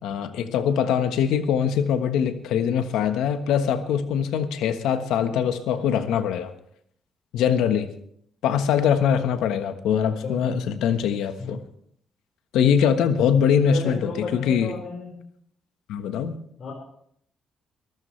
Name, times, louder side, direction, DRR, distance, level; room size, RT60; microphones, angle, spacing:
voice 1, 0.0-6.5 7.3-7.9 8.4-11.6 12.5-14.7 15.9-16.4, left 8 dB, 90° left, 8 dB, 1.3 m, -22 dB
voice 2, 10.2-10.5 11.4-11.5 13.6-15.1 16.6-16.7, left 4 dB, 55° left, -2 dB, 4.9 m, -33 dB
22.5 x 14.5 x 3.3 m, 0.66 s
cardioid pair, 90°, 0 cm